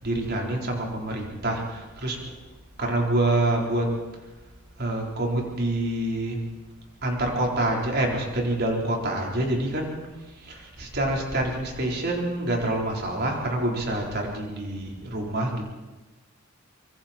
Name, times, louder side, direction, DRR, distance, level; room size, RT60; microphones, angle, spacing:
voice 1, 0.0-2.3 2.8-3.9 4.8-6.4 7.0-10.0 10.4-15.7, right 1 dB, 50° right, 0 dB, 4.3 m, -26 dB
25.0 x 23.5 x 4.5 m, 1.2 s
head